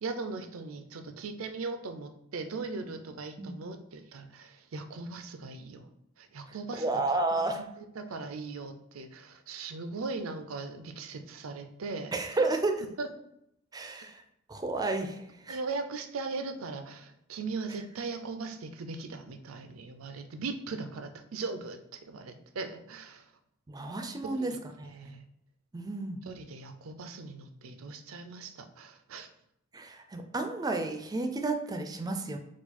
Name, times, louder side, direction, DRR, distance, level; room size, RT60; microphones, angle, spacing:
voice 1, 0.0-5.9 6.2-6.9 7.3-12.4 13.0-13.1 15.5-23.3 24.2-24.6 24.8-25.2 26.3-29.3, right 3 dB, 85° right, 8 dB, 0.5 m, -39 dB
voice 2, 6.8-7.6 12.1-12.8 13.7-14.2 14.5-15.6 23.7-24.5 24.8-25.1 25.7-26.2 29.7-32.4, right 2 dB, 20° right, 5 dB, 0.4 m, -31 dB
4.5 x 2.3 x 4.1 m, 0.77 s
head